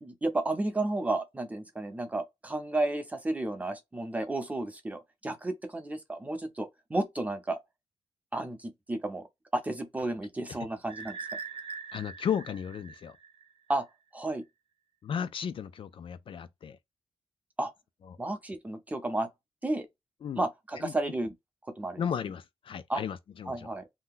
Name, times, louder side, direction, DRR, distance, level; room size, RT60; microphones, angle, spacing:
voice 1, 0.0-7.6 8.3-9.2 9.5-11.2 13.7-13.8 14.1-14.4 17.6-17.7 18.2-19.3 19.6-19.9 20.4-21.3 21.8-22.0 22.9-23.0 23.5-23.8, right 2 dB, 15° right, 0.6 m, -32 dB
sound 1, 10.9-13.7, right 5 dB, 60° right, 0.7 m, -42 dB
voice 2, 11.9-13.2 15.0-16.8 18.1-18.2 20.2-20.4 20.8-20.9 22.0-23.7, left 8 dB, 55° left, 0.3 m, -35 dB
2.8 x 2.2 x 3.6 m
wide cardioid pair, 145°, 11 cm